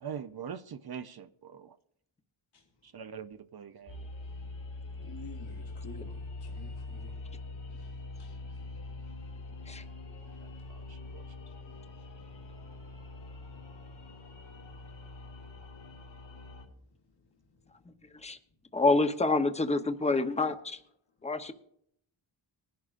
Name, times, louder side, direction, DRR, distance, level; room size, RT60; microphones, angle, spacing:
voice 1, 0.0-1.8 2.9-4.0 10.7-11.2, right 7 dB, 55° right, 0.6 m, -42 dB
sound 1, 3.9-16.6, left 2 dB, 70° left, 3.1 m, -43 dB
voice 2, 5.0-7.1 7.7-8.4, left 3 dB, 55° left, 1.5 m, -50 dB
voice 3, 18.7-20.8 21.2-21.5, left 3 dB, 15° left, 0.8 m, -27 dB
20.5 x 11.0 x 2.5 m
wide cardioid pair, 95°, 47 cm